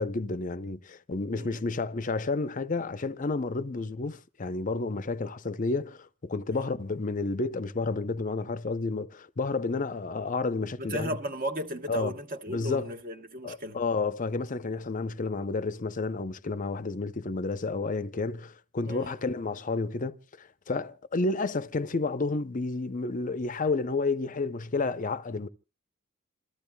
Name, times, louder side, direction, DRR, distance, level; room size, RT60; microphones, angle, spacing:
voice 1, 0.0-11.2 11.9-12.1 12.5-12.9 13.4-25.5, left 3 dB, 40° left, 0.6 m, -31 dB
voice 2, 1.3-1.6 6.5-6.7 10.8-13.8 18.9-19.2, equal, 45° right, 1.2 m, -35 dB
28.0 x 14.0 x 2.2 m
head